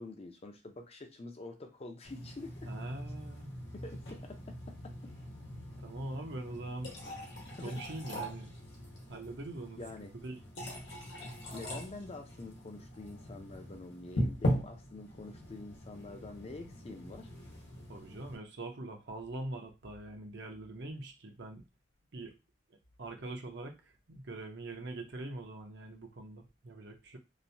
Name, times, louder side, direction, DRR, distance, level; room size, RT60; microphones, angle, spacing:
voice 1, 0.0-2.7 3.7-4.9 7.6-7.8 9.8-10.1 11.5-17.3, left 2 dB, 35° left, 5 dB, 0.5 m, -46 dB
sound 1, 2.0-18.4, equal, 70° left, 1.0 m, -40 dB
voice 2, 2.7-3.5 5.8-7.0 7.5-8.5 9.1-9.8 10.1-10.4 17.9-21.6 22.1-22.3 23.0-27.2, right 2 dB, 65° right, 4 dB, 0.7 m, -43 dB
2.9 x 2.1 x 2.6 m, 0.25 s
head